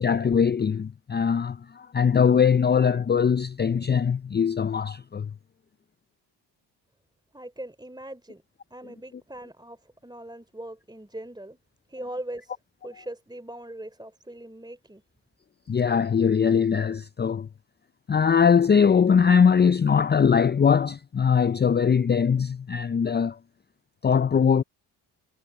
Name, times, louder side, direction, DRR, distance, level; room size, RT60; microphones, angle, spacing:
voice 1, 0.0-5.3 15.7-17.5 18.1-23.4 24.0-24.6, left 6 dB, 20° left, 0.5 m, -21 dB
voice 2, 7.3-8.4 8.7-11.6 11.9-12.6 12.8-15.0, right 1 dB, 10° right, 3.5 m, -40 dB
supercardioid pair, 50°, 49 cm